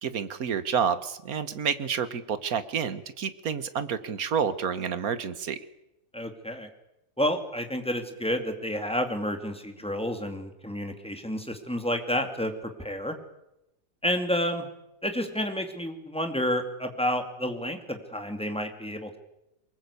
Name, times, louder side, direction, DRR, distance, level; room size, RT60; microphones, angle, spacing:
voice 1, 0.0-5.6, right 7 dB, 55° right, 13 dB, 1.6 m, -29 dB
voice 2, 6.1-6.7 7.2-13.2 14.0-14.7 15.0-19.2, equal, 5° left, 5 dB, 2.3 m, -30 dB
23.0 x 20.5 x 8.4 m, 0.88 s
omnidirectional pair, 2.0 m